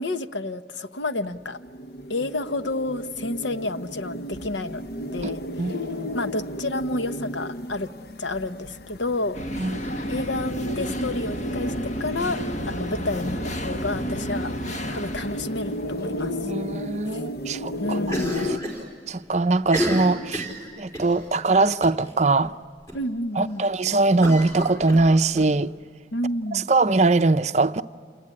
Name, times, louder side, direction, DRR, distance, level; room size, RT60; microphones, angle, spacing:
voice 1, 0.0-1.6 2.1-4.9 5.1-5.7 6.1-7.9 8.2-9.4 10.1-12.4 12.7-14.5 14.9-16.3 17.1-17.2 17.8-18.3 22.9-23.6 26.1-26.7, left 2 dB, 80° left, 1.0 m, -30 dB
sound 1, 1.4-18.6, left 1 dB, 60° left, 0.8 m, -34 dB
sound 2, 9.3-16.4, equal, 40° left, 1.4 m, -32 dB
voice 2, 16.4-18.0 19.1-20.5 20.8-22.5 23.4-25.7 26.5-27.8, right 3 dB, 40° right, 0.6 m, -21 dB
Cough, 18.1-18.9 19.1-19.2 19.6-21.2 21.8-22.1 22.4-22.5 22.9-23.0 24.2-25.5, equal, 15° left, 4.9 m, -30 dB
28.5 x 19.5 x 9.9 m
head